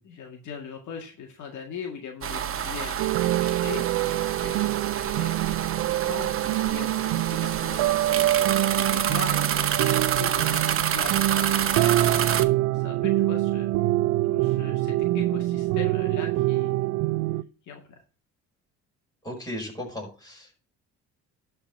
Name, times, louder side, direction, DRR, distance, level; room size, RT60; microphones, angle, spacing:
voice 1, 0.0-12.1 12.7-13.7 14.2-16.9 17.6-18.0, left 6 dB, 65° left, 2 dB, 1.9 m, -40 dB
sound 1, 2.2-12.4, right 9 dB, 45° right, 0.9 m, -28 dB
sound 2, 3.0-17.4, right 16 dB, 85° right, 0.5 m, -25 dB
voice 2, 19.2-20.6, left 1 dB, 10° left, -1 dB, 5.5 m, -36 dB
12.0 x 4.5 x 5.8 m, 0.38 s
supercardioid pair, 85°, 32 cm